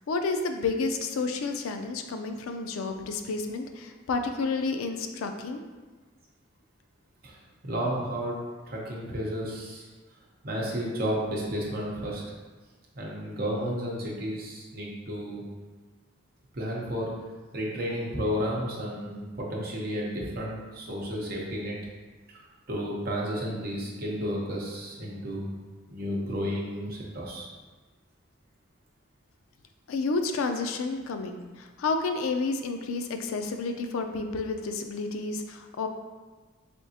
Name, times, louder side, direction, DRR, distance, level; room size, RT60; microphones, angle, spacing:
voice 1, 0.1-5.6 29.9-35.9, left 3 dB, 85° left, 6 dB, 0.4 m, -30 dB
voice 2, 7.6-8.4 8.7-9.9 10.4-12.2 12.9-15.5 16.5-17.1 17.5-21.7 22.3-22.4 22.7-25.5 25.9-27.5, equal, 45° right, -3 dB, 0.8 m, -32 dB
3.9 x 3.4 x 2.8 m, 1.3 s
head